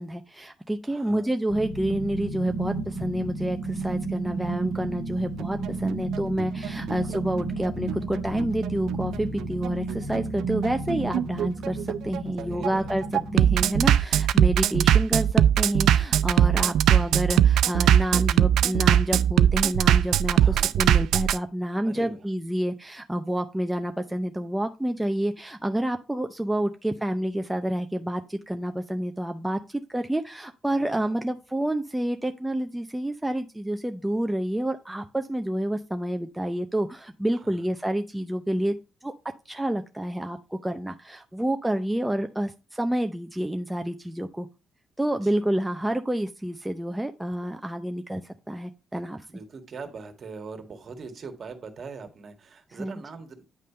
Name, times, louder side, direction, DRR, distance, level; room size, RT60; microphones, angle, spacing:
voice 1, 0.0-13.0 13.3-38.8 39.0-39.1 39.5-44.5 45.0-49.3 52.7-53.0, right 1 dB, 5° right, 6 dB, 0.6 m, -29 dB
voice 2, 0.9-1.3 6.8-7.2 12.4-12.9 20.3-20.8 21.8-22.2 30.7-31.2 37.3-37.7 45.2-45.4 49.3-53.4, right 4 dB, 50° right, 6 dB, 1.7 m, -42 dB
sound 1, 1.5-13.7, right 3 dB, 80° left, 1.9 m, -32 dB
Bass drum, 5.4-21.4, right 10 dB, 80° right, 0.3 m, -21 dB
9.2 x 3.3 x 5.5 m, 0.30 s
cardioid pair, 90°, 0 cm